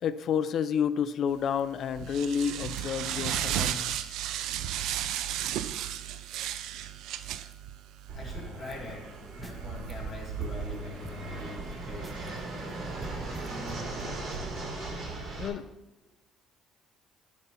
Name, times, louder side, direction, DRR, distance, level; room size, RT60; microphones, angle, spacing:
voice 1, 0.0-4.2 13.8-14.0 15.4-15.7, left 7 dB, 50° left, 14 dB, 0.5 m, -30 dB
sound 1, 1.4-13.8, right 11 dB, 75° right, 0.5 m, -36 dB
voice 2, 8.1-9.1 9.3-12.4, left 2 dB, 15° left, -4 dB, 3.3 m, -43 dB
Fixed-wing aircraft airplane, 8.1-15.5, right 2 dB, 50° right, 2.6 m, -38 dB
sound 2, 9.4-9.8 10.1-10.2 10.4-12.4 12.7-12.8 13.0-14.5, right 1 dB, 15° right, 0.6 m, -47 dB
11.5 x 4.3 x 5.6 m, 1.0 s
cardioid pair, 125°, 0 cm